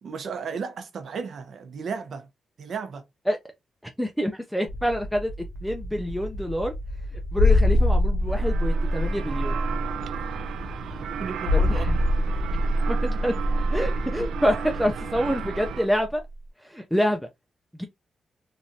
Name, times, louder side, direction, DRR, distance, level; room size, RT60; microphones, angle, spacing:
voice 1, 0.0-2.3 2.6-3.0 11.0-12.1, right 5 dB, 60° right, 0.7 m, -34 dB
voice 2, 3.8-5.3 5.6-6.7 7.1-9.6 11.5-12.0 12.9-13.3 13.7-16.2 16.6-17.3 17.7-17.9, equal, ahead, 0.5 m, -27 dB
sound 1, 4.7-15.8, equal, 45° left, 0.9 m, -37 dB
sound 2, 7.3-15.7 16.0-16.2, left 1 dB, 70° left, 0.6 m, -24 dB
sound 3, 8.3-15.9, right 8 dB, 85° right, 0.4 m, -35 dB
3.2 x 2.6 x 2.6 m
wide cardioid pair, 145°, 0 cm